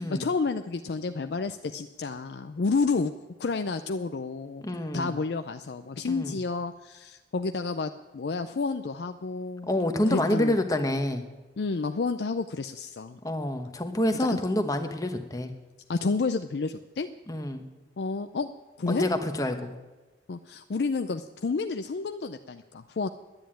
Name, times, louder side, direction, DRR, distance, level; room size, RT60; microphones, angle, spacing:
voice 1, 0.0-3.1 3.4-4.6 4.9-9.7 10.1-10.5 11.6-13.2 14.3-14.4 15.9-17.1 18.0-18.5 18.8-19.0 20.3-23.1, left 4 dB, 65° left, 9 dB, 0.4 m, -30 dB
voice 2, 4.6-5.1 6.0-6.4 9.7-11.2 13.2-15.5 17.3-17.7 18.9-19.8, left 1 dB, 20° left, 6 dB, 1.0 m, -27 dB
10.5 x 9.3 x 8.9 m, 1.2 s
head